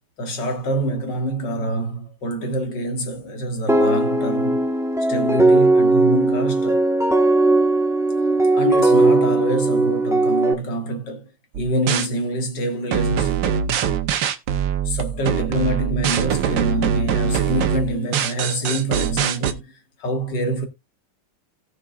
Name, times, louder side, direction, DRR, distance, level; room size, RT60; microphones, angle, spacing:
voice 1, 0.2-4.7 5.1-6.9 8.5-11.3 11.6-13.6 14.8-20.7, right 1 dB, 70° left, 2.4 m, -26 dB
sound 1, 3.7-10.5, right 2 dB, ahead, 0.9 m, -18 dB
sound 2, 11.5-12.1 12.9-19.5, right 8 dB, 80° right, 1.6 m, -22 dB
17.5 x 6.1 x 2.4 m
omnidirectional pair, 2.0 m